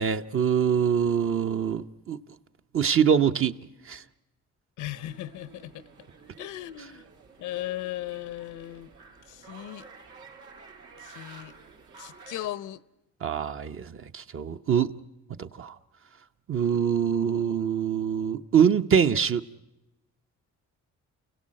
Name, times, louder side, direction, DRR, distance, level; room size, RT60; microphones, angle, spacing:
voice 1, 0.0-2.2 2.7-3.6 3.9-4.0 13.2-14.9 15.4-15.7 16.5-19.4, right 8 dB, 45° right, 0.9 m, -24 dB
voice 2, 4.8-5.9 6.4-7.0 7.4-8.9 9.3-9.9 11.0-11.5 12.0-12.8, left 14 dB, 80° left, 0.8 m, -37 dB
sound 1, 4.9-12.5, right 4 dB, 80° right, 3.6 m, -51 dB
29.0 x 17.0 x 7.6 m
cardioid pair, 90°, 30 cm